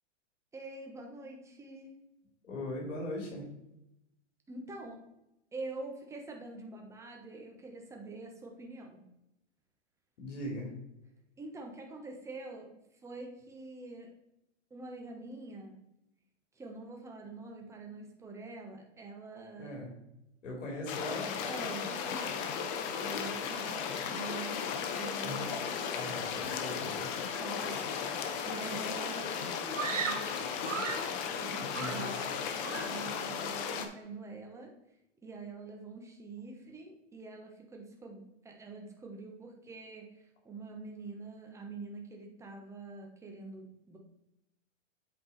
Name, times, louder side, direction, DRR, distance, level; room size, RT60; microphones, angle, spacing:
voice 1, 0.5-2.0 4.5-5.0 5.5-9.0 11.4-12.7 13.0-14.1 14.7-15.8 16.5-19.7 21.4-22.7 23.0-24.6 24.9-26.1 27.4-30.2 31.4-34.7 35.2-44.0, right 3 dB, 10° right, 1 dB, 1.1 m, -45 dB
voice 2, 2.4-3.4 10.2-10.7 19.6-19.9 20.4-21.4 25.2-25.6 25.9-27.1 31.8-32.2, left 1 dB, 75° left, -1 dB, 2.7 m, -39 dB
sound 1, 20.9-33.9, left 7 dB, 40° left, 0.9 m, -36 dB
Screaming, 29.7-31.2 31.7-32.4 32.6-33.1, right 6 dB, 85° right, 1.4 m, -37 dB
8.0 x 4.6 x 4.1 m, 0.87 s
hypercardioid pair, 145°, 37 cm